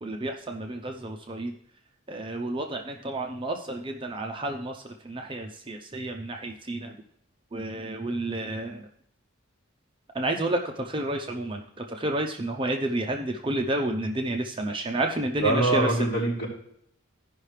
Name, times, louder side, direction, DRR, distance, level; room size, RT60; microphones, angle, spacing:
voice 1, 0.0-1.6 2.1-7.0 7.5-8.9 10.1-16.0, right 1 dB, 25° right, 2 dB, 0.6 m, -30 dB
voice 2, 15.4-16.5, right 2 dB, 40° left, -7 dB, 4.2 m, -24 dB
16.0 x 5.6 x 3.3 m, 0.71 s
head